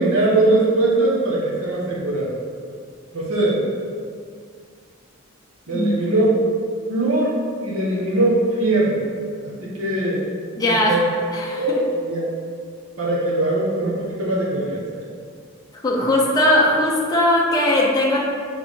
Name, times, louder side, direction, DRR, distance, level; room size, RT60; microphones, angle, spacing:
voice 1, 0.0-2.3 3.1-3.6 5.7-6.3 6.9-7.4 7.6-9.0 9.4-10.2 10.6-11.0 11.5-12.2 13.0-15.1, right 2 dB, 80° right, -6 dB, 1.2 m, -21 dB
voice 2, 10.5-11.0 11.3-11.8 15.8-18.2, left 1 dB, 15° left, -4 dB, 0.6 m, -19 dB
5.1 x 3.6 x 5.3 m, 2.2 s
head